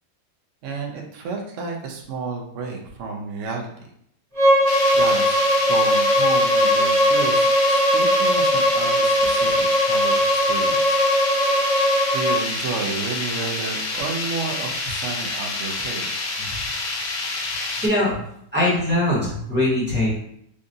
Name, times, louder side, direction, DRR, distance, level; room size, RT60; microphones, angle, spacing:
voice 1, 0.6-3.7 4.9-11.0 12.1-16.1, right 4 dB, 60° right, 1 dB, 0.8 m, -31 dB
Bowed string instrument, 4.3-12.4, equal, 25° right, 0.9 m, -19 dB
sound 1, 4.7-17.9, left 3 dB, 80° left, 1.4 m, -28 dB
voice 2, 17.8-18.2 18.5-20.2, left 1 dB, 5° right, -8 dB, 1.1 m, -21 dB
4.9 x 2.4 x 2.6 m, 0.71 s
omnidirectional pair, 1.9 m